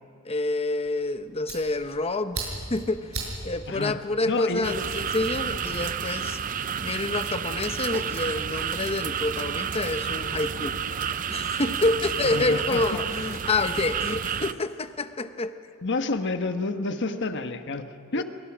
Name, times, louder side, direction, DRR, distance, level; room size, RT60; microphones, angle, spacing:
voice 1, 0.2-10.8 11.1-15.5 18.1-18.2, left 2 dB, 30° left, 10 dB, 0.9 m, -28 dB
Fire, 0.8-5.4, right 3 dB, 75° right, 6.8 m, -39 dB
voice 2, 3.7-4.0 4.3-4.7 12.2-13.0 15.8-18.2, left 3 dB, 55° left, 8 dB, 1.3 m, -29 dB
sound 1, 4.6-14.5, right 7 dB, 40° right, 0.5 m, -30 dB
28.0 x 24.5 x 6.2 m, 2.6 s
head